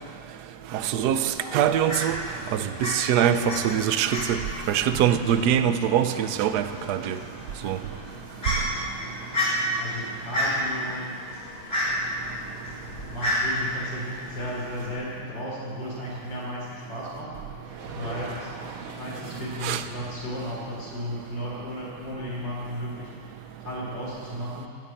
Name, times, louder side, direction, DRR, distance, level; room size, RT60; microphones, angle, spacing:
voice 1, 0.7-2.2 2.5-4.4 4.7-7.2 7.6-7.8 19.6-19.8, right 9 dB, 65° right, 10 dB, 1.2 m, -23 dB
Fowl, 1.3-14.9, equal, 30° left, 4.7 m, -32 dB
voice 2, 9.8-11.1 13.1-17.4 17.7-18.6 18.9-24.7, equal, 65° left, -4 dB, 4.2 m, -35 dB
sound 1, 17.6-23.2, right 4 dB, 85° right, 2.2 m, -42 dB
16.5 x 9.5 x 8.7 m, 2.3 s
omnidirectional pair, 2.1 m